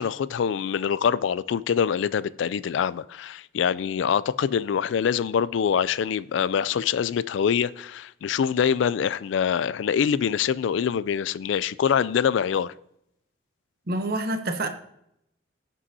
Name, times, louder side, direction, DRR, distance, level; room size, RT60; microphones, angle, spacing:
voice 1, 0.0-12.7, left 7 dB, 70° left, 0.3 m, -24 dB
voice 2, 13.9-14.7, right 1 dB, 50° right, 0.8 m, -27 dB
15.0 x 5.5 x 2.7 m
head